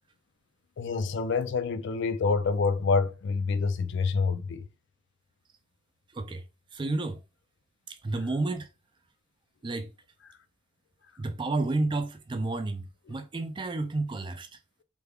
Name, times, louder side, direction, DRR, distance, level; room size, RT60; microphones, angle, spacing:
voice 1, 0.8-4.6, left 4 dB, 55° left, 0.3 m, -27 dB
voice 2, 6.7-7.2 8.0-8.7 9.6-9.9 11.2-14.5, right 2 dB, 25° right, 0.3 m, -31 dB
3.4 x 2.2 x 3.4 m
head